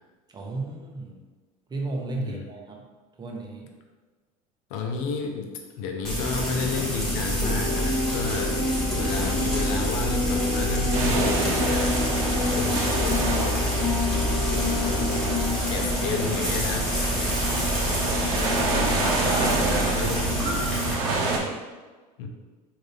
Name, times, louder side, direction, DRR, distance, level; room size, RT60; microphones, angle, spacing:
voice 1, 0.3-1.2 1.7-2.8 3.2-3.7 12.7-12.8 17.4-19.9, right 2 dB, 25° right, 0 dB, 0.8 m, -34 dB
voice 2, 2.1-2.5 4.7-8.6 8.9-14.1 14.5-15.1 15.7-17.3 18.6-20.7 22.2-22.3, left 4 dB, 75° left, 3 dB, 0.7 m, -32 dB
Frying (food), 6.0-20.9, equal, 5° left, 1.3 m, -27 dB
sound 1, 7.4-15.6, left 2 dB, 20° left, 1.4 m, -29 dB
sound 2, 10.9-21.4, right 3 dB, 75° right, 0.7 m, -29 dB
3.7 x 2.7 x 3.2 m, 1.3 s
supercardioid pair, 90°, 18 cm